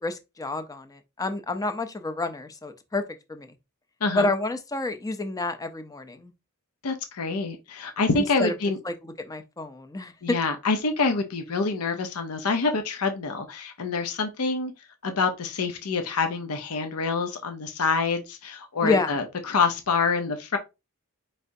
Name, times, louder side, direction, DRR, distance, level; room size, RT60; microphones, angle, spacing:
voice 1, 0.0-3.0 3.3-3.5 4.2-6.3 8.2-8.5 8.8-10.4 18.8-19.1, left 3 dB, 15° left, 0.5 m, -29 dB
voice 2, 6.8-8.8 10.2-14.7 15.0-20.6, left 4 dB, 80° left, 0.7 m, -26 dB
4.9 x 3.3 x 2.6 m
head